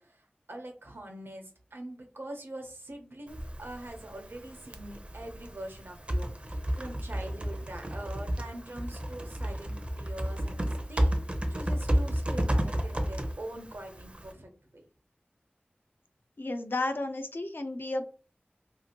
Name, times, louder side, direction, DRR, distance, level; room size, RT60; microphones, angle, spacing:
voice 1, 0.0-14.8, right 1 dB, 75° right, 3 dB, 0.8 m, -44 dB
Typing, 3.3-14.3, equal, 30° right, 0.5 m, -32 dB
voice 2, 16.4-18.1, left 2 dB, 65° left, 6 dB, 0.5 m, -32 dB
2.7 x 2.5 x 2.9 m, 0.38 s
wide cardioid pair, 50°, 4 cm